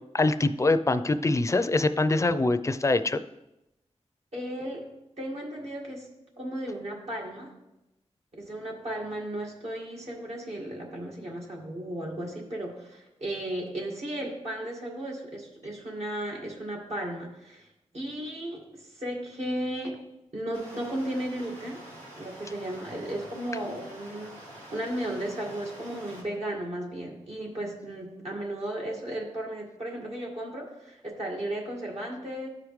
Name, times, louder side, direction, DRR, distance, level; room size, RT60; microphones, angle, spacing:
voice 1, 0.1-3.2, left 2 dB, 25° left, 11 dB, 0.4 m, -24 dB
voice 2, 4.3-4.9 5.2-6.1 6.4-7.5 8.3-17.7 17.9-20.0 20.3-21.8 22.2-32.5, right 1 dB, 65° right, -2 dB, 1.8 m, -35 dB
Stream, 20.5-26.2, right 1 dB, 90° right, 2.2 m, -46 dB
12.5 x 4.9 x 3.1 m, 0.91 s
wide cardioid pair, 65°, 12 cm